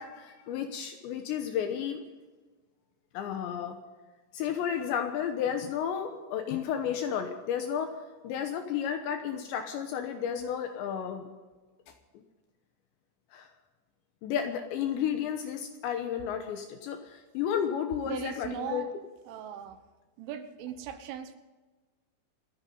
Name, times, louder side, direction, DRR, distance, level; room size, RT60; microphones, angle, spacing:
voice 1, 0.0-2.0 3.1-3.8 4.3-7.9 8.2-11.3 13.3-13.5 14.2-18.8, left 8 dB, 75° left, 6 dB, 2.8 m, -32 dB
voice 2, 18.0-18.9 19.3-19.8 20.2-21.4, right 9 dB, 75° right, 8 dB, 3.4 m, -38 dB
28.5 x 9.7 x 3.9 m, 1.3 s
omnidirectional pair, 6.0 m